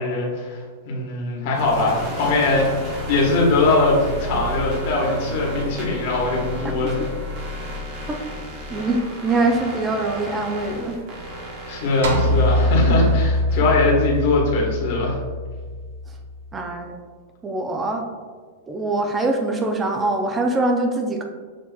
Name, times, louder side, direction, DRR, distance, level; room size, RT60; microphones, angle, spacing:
voice 1, 0.0-7.0 11.7-15.2, left 2 dB, 50° left, -3 dB, 1.3 m, -21 dB
sound 1, 1.5-14.3, right 1 dB, 35° right, 0.9 m, -33 dB
voice 2, 8.7-11.0 16.5-17.0 17.4-18.0 18.7-21.2, right 2 dB, 15° right, 3 dB, 0.4 m, -23 dB
sound 2, 12.0-16.4, equal, 75° right, 0.7 m, -22 dB
6.5 x 2.9 x 2.3 m, 1.5 s
supercardioid pair, 160°, 0 cm